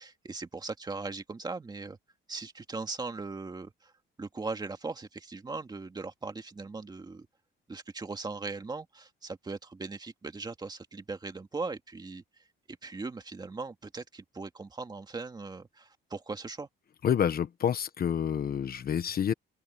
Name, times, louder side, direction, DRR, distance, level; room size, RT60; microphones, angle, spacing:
voice 1, 0.0-2.0 2.3-3.9 4.2-7.3 7.7-12.2 12.7-16.7, right 3 dB, 20° right, 2.1 m, -39 dB
voice 2, 17.0-19.3, left 8 dB, 45° left, 1.1 m, -28 dB
open air
cardioid pair, 145°, 21 cm